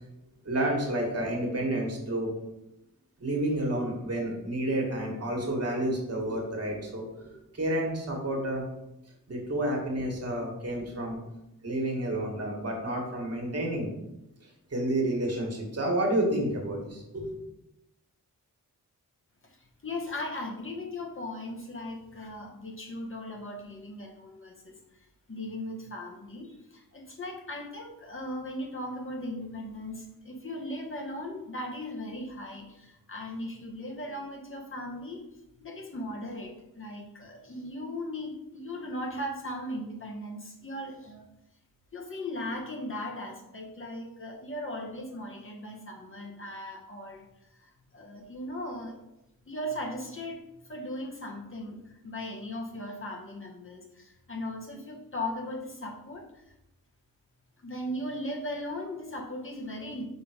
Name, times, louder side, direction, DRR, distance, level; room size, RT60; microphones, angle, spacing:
voice 1, 0.4-2.3 3.2-8.6 9.3-11.2 11.6-13.9 14.7-17.4, right 1 dB, 45° right, -1 dB, 1.7 m, -30 dB
voice 2, 19.8-24.8 25.3-35.2 35.6-41.3 41.9-47.3 47.9-48.9 49.5-50.4 50.7-56.3 57.6-60.1, left 1 dB, 35° left, 0 dB, 1.1 m, -38 dB
5.2 x 3.9 x 5.0 m, 0.89 s
wide cardioid pair, 100°, 35 cm